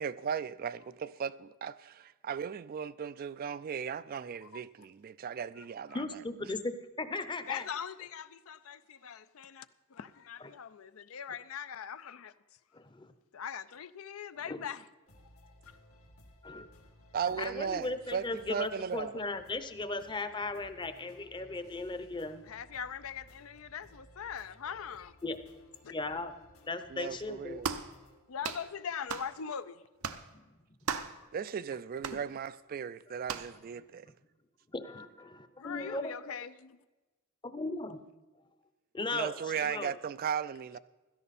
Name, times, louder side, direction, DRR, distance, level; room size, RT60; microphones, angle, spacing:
voice 1, 0.0-6.2 17.1-19.2 26.9-27.7 31.3-34.1 39.1-40.8, right 7 dB, 45° right, 0.3 m, -37 dB
voice 2, 4.4-4.9 5.6-5.7 5.9-6.0 7.5-12.3 13.3-14.8 15.4-15.8 22.4-25.2 25.8-25.9 28.3-29.8 31.0-31.3 35.6-36.8, left 7 dB, 70° left, 0.5 m, -42 dB
voice 3, 5.9-7.6 12.7-13.1 14.5-14.6 16.4-16.7 17.4-22.4 25.2-25.4 25.9-26.3 26.6-27.6 34.7-36.1 37.4-38.0 38.9-39.3 39.7-39.9, left 2 dB, 20° left, 0.7 m, -37 dB
sound 1, 15.1-28.2, left 1 dB, 90° left, 2.3 m, -59 dB
sound 2, 27.6-27.9 28.4-28.7 29.1-29.3 30.0-30.3 30.9-31.2 32.0-32.2 33.3-33.5, right 6 dB, 85° right, 0.8 m, -36 dB
16.0 x 13.0 x 4.2 m
head